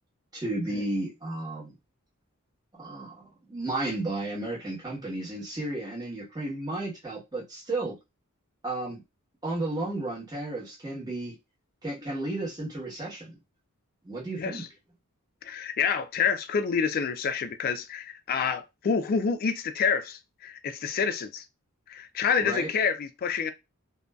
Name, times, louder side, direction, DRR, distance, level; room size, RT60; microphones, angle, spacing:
voice 1, 0.3-1.7 2.8-3.2 3.5-7.9 8.6-9.0 9.4-11.3 11.8-13.4 14.0-14.6 22.4-22.7, right 2 dB, 20° right, 1.0 m, -33 dB
voice 2, 14.4-14.7 15.4-21.4 21.9-23.5, left 6 dB, 40° left, 0.3 m, -28 dB
2.5 x 2.2 x 2.2 m
head